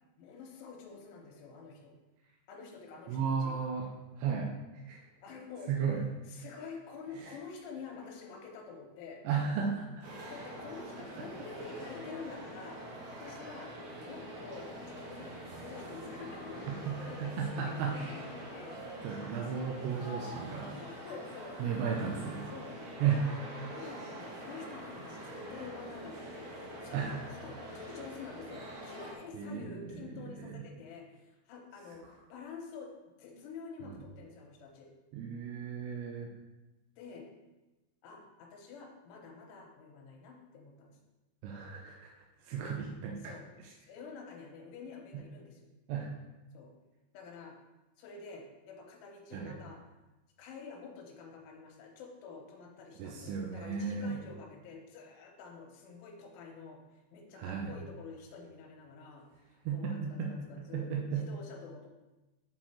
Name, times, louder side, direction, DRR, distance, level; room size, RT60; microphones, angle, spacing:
voice 1, 0.2-1.9 2.5-3.6 5.2-5.7 6.3-9.2 10.3-12.8 13.1-13.7 14.0-18.8 20.8-21.6 22.5-22.8 23.1-23.4 23.7-32.0 32.3-32.9 33.2-34.9 37.0-37.3 38.0-41.0 42.7-42.9 43.2-43.4 43.8-45.6 46.5-46.7 47.1-47.5 48.0-49.8 50.4-56.8 57.1-59.2 59.7-61.9, left 5 dB, 80° left, 0 dB, 3.4 m, -48 dB
voice 2, 3.1-5.1 5.7-6.0 7.2-7.4 9.2-10.1 11.2-11.3 11.8-11.9 16.7-18.2 18.7-18.8 19.0-20.8 21.6-22.4 23.0-23.3 26.9-27.2 29.3-30.6 33.8-34.0 35.1-36.3 41.4-42.1 42.4-43.3 45.9-46.1 49.3-49.5 53.0-54.2 57.3-57.7 59.7-61.3, right 6 dB, 80° right, 0 dB, 2.7 m, -35 dB
sound 1, 10.0-29.2, equal, 60° right, 2.5 m, -45 dB
7.9 x 4.3 x 4.3 m, 1.1 s
omnidirectional pair, 5.6 m